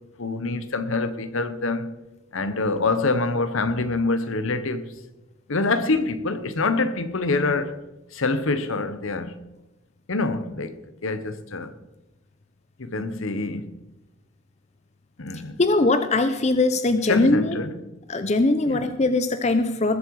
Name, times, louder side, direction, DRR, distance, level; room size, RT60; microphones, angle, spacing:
voice 1, 0.2-1.9 2.3-4.9 5.5-7.8 8.1-9.4 10.1-11.7 12.8-13.7 15.2-15.6 17.1-17.8 18.6-18.8, left 3 dB, 65° left, 1.0 m, -26 dB
voice 2, 15.6-17.6 18.1-20.0, left 2 dB, 30° left, 0.5 m, -21 dB
20.0 x 7.6 x 4.8 m
head